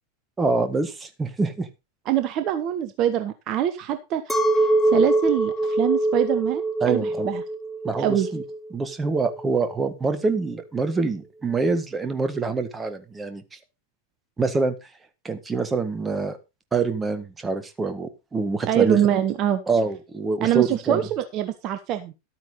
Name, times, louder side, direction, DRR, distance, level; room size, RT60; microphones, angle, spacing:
voice 1, 0.4-1.7 6.8-7.3 7.8-8.4 8.7-13.4 14.4-14.7 15.2-16.4 16.7-19.0 19.7-21.0, right 4 dB, 15° right, 10 dB, 1.6 m, -25 dB
voice 2, 2.1-4.2 4.5-7.4 8.0-8.3 18.6-19.6 20.4-22.1, right 11 dB, 35° right, 10 dB, 1.0 m, -24 dB
Chink clink, 4.3-9.7, right 2 dB, 5° left, 1.4 m, -24 dB
12.5 x 9.1 x 4.0 m, 0.27 s
figure-of-eight pair, 90°, 0 cm